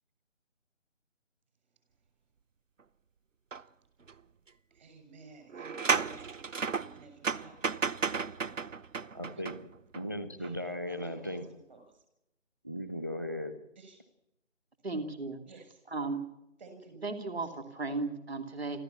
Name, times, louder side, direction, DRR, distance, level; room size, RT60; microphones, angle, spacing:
sound 1, 3.5-3.6 4.1-4.2 5.5-10.0 10.4-10.5, right 5 dB, 85° right, 0.8 m, -33 dB
voice 1, 4.7-6.5 6.7-7.6 9.3-9.4 10.4-12.0 13.7-14.0 15.4-15.8 16.6-17.0 17.3-17.5, right 3 dB, 35° right, 6 dB, 6.7 m, -54 dB
voice 2, 9.1-11.4 12.6-13.5, left 1 dB, 15° right, 11 dB, 0.9 m, -37 dB
voice 3, 14.8-15.4 15.9-16.2 17.0-18.8, right 3 dB, 55° right, 6 dB, 3.0 m, -35 dB
26.0 x 14.5 x 7.2 m, 0.85 s
figure-of-eight pair, 160°, 37 cm